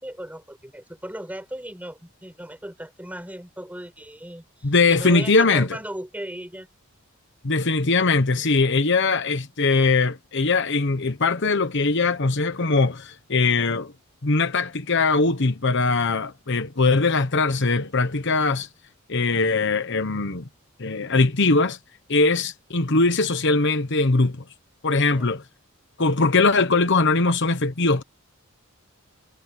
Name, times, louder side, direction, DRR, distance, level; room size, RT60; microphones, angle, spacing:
voice 1, 0.0-6.7 25.1-25.3, right 1 dB, 5° right, 5.7 m, -37 dB
voice 2, 4.6-5.7 7.4-13.9 14.2-18.7 19.1-20.4 20.8-21.8 22.1-24.4 24.8-25.4 26.0-28.0, left 3 dB, 55° left, 1.1 m, -21 dB
head